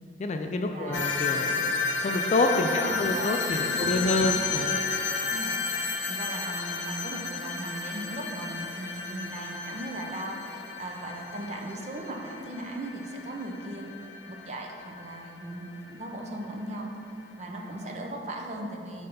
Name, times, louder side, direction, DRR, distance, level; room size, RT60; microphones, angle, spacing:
voice 1, 0.2-4.8, left 2 dB, 40° left, 5 dB, 0.3 m, -28 dB
voice 2, 0.7-1.3 2.7-3.3 3.6-4.6 5.3-13.9 14.3-16.9 17.4-19.1, right 1 dB, 40° right, 2 dB, 0.5 m, -38 dB
sound 1, 0.9-15.9, left 4 dB, 90° left, 0.7 m, -32 dB
5.3 x 3.3 x 5.6 m, 2.6 s
head